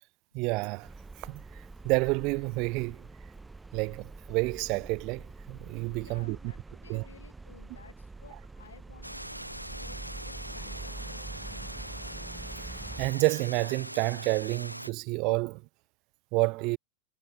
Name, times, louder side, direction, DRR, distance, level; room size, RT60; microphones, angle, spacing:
voice 1, 0.3-0.9 1.2-3.1 3.7-6.5 6.9-7.1 13.0-15.6 16.3-16.8, right 27 dB, 40° right, 1.2 m, -29 dB
sound 1, 0.8-13.1, right 3 dB, 10° right, 1.4 m, -45 dB
voice 2, 6.0-9.4 9.7-11.8, left 6 dB, 70° left, 5.6 m, -55 dB
sound 2, 9.0-14.9, equal, 90° right, 0.9 m, -42 dB
figure-of-eight pair, 90°, 0 cm